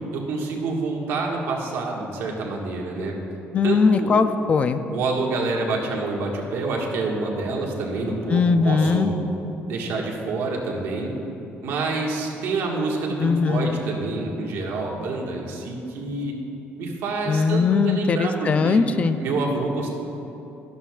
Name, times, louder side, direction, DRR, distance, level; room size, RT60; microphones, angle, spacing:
voice 1, 0.0-3.1 3.6-4.1 4.9-9.1 9.7-11.1 11.6-16.4 16.8-18.8 19.2-19.9, right 3 dB, 90° right, -1 dB, 1.6 m, -27 dB
voice 2, 3.5-4.8 8.3-9.1 13.2-13.8 17.3-19.2, left 5 dB, 30° left, 10 dB, 0.4 m, -20 dB
14.0 x 11.0 x 2.4 m, 3.0 s
cardioid pair, 170°, 4 cm